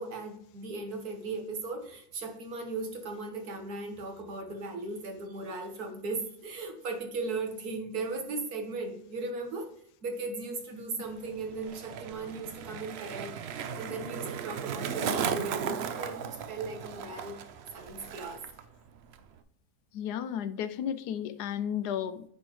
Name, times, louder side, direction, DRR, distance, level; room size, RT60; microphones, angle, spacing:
voice 1, 0.0-9.7 10.0-13.4 13.8-17.4 17.7-18.4, right 3 dB, 65° right, 4 dB, 1.7 m, -37 dB
Skateboard, 11.1-18.6 18.9-19.4, right 7 dB, 85° right, 0.5 m, -36 dB
voice 2, 19.9-22.2, left 9 dB, 80° left, 13 dB, 1.1 m, -33 dB
9.7 x 4.5 x 3.1 m, 0.66 s
omnidirectional pair, 1.7 m